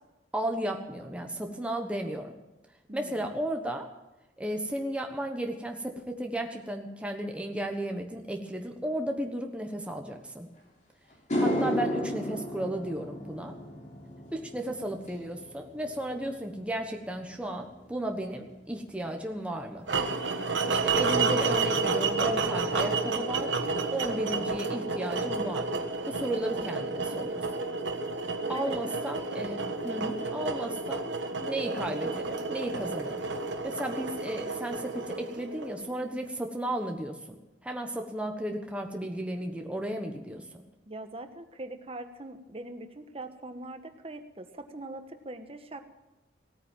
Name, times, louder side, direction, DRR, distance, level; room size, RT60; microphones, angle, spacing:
voice 1, 0.3-2.3 2.9-3.9 4.4-10.5 11.4-13.5 14.3-19.9 20.7-23.5 23.9-27.4 28.5-31.0 31.4-33.2 33.6-37.4 37.6-40.6, right 1 dB, 5° right, 3 dB, 1.2 m, -34 dB
voice 2, 2.9-3.2 28.5-28.8 40.9-45.8, right 2 dB, 30° right, 8 dB, 1.3 m, -42 dB
sound 1, 10.6-10.7 11.1-19.6 19.9-20.3 23.9-24.0 25.7-25.8 26.1-26.2 26.5-27.0, equal, 40° left, 3.8 m, -35 dB
sound 2, 19.9-36.0, right 3 dB, 80° right, 1.5 m, -30 dB
17.0 x 9.3 x 9.1 m, 1.0 s
head